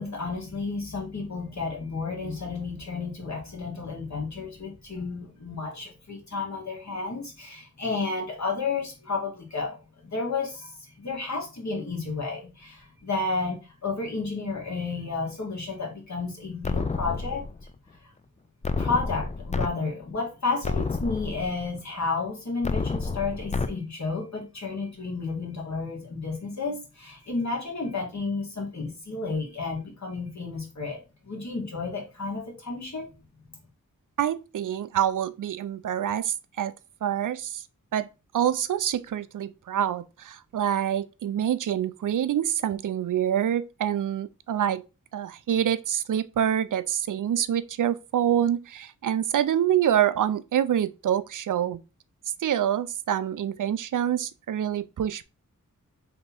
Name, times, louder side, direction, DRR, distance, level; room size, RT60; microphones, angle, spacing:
voice 1, 0.0-17.4 18.0-18.1 18.8-33.1, left 4 dB, 55° left, 1.8 m, -32 dB
sound 1, 16.6-17.7 18.6-19.7 20.1-20.2 20.6-21.7 22.6-23.7, left 4 dB, 20° left, 0.4 m, -29 dB
voice 2, 34.2-36.7 37.0-37.6 37.9-38.1 38.3-44.8 45.1-51.8 52.4-55.2, right 10 dB, 65° right, 0.4 m, -26 dB
3.5 x 3.0 x 4.1 m
cardioid pair, 55°, 34 cm